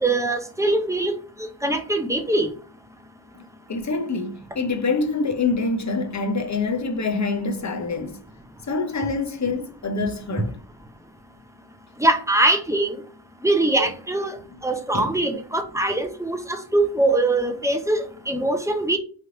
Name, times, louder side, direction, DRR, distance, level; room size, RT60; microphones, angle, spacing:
voice 1, 0.0-1.1 1.6-2.5 12.0-13.0 13.4-14.4 14.6-19.0, right 2 dB, 5° right, 0.6 m, -22 dB
voice 2, 3.3-8.2 8.7-10.6 14.9-15.1, left 3 dB, 40° left, 0.7 m, -26 dB
3.3 x 3.0 x 3.7 m
wide cardioid pair, 110°, 45 cm